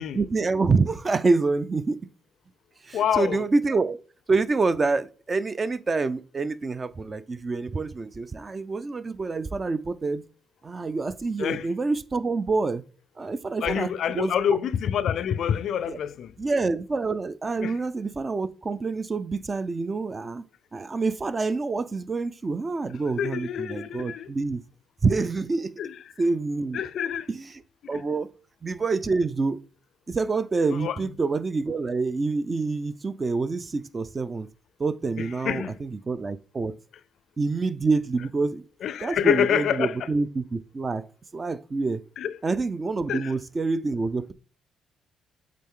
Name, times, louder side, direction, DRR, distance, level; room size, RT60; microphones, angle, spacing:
voice 1, 0.1-2.0 2.8-4.0 4.3-10.2 10.6-12.8 13.2-13.9 14.1-14.4 15.9-16.0 16.4-20.4 20.7-24.6 25.0-25.8 26.2-26.8 27.3-27.5 27.9-28.3 28.6-29.6 30.1-34.5 34.8-36.7 37.4-38.6 39.0-41.0 41.3-42.0 42.4-44.3, right 3 dB, 30° right, 0.4 m, -27 dB
voice 2, 2.9-3.4 11.4-11.7 13.6-16.3 17.6-17.7 23.2-24.3 25.8-26.0 26.7-27.3 27.9-28.0 30.7-31.0 35.2-35.8 38.8-40.0 42.2-42.4 43.1-43.3, left 9 dB, 70° left, 0.4 m, -27 dB
7.5 x 3.8 x 3.7 m
cardioid pair, 90°, 0 cm